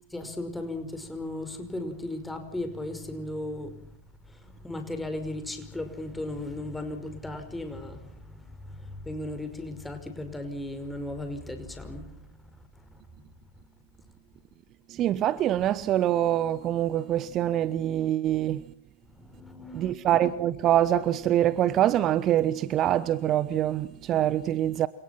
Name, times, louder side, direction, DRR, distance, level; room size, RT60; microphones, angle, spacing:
voice 1, 0.1-3.8 4.3-12.1 12.9-13.0 19.1-19.9, left 1 dB, 5° left, 5.5 m, -36 dB
voice 2, 14.9-18.6 19.7-24.9, right 12 dB, 30° right, 1.0 m, -25 dB
29.5 x 26.5 x 6.0 m
figure-of-eight pair, 90°, 0 cm